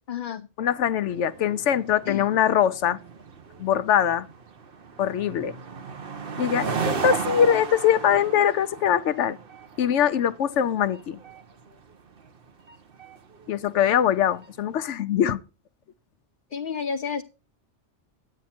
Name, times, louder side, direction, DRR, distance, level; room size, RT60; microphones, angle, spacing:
voice 1, 0.1-0.5 2.1-2.3 16.5-17.2, left 6 dB, 55° left, 0.7 m, -30 dB
voice 2, 0.6-3.0 3.6-4.3 5.0-5.6 6.4-9.4 9.8-11.2 13.5-15.4, left 9 dB, 80° left, 1.0 m, -22 dB
sound 1, 1.1-14.6, right 5 dB, 55° right, 1.1 m, -35 dB
9.9 x 8.4 x 4.3 m
omnidirectional pair, 1.2 m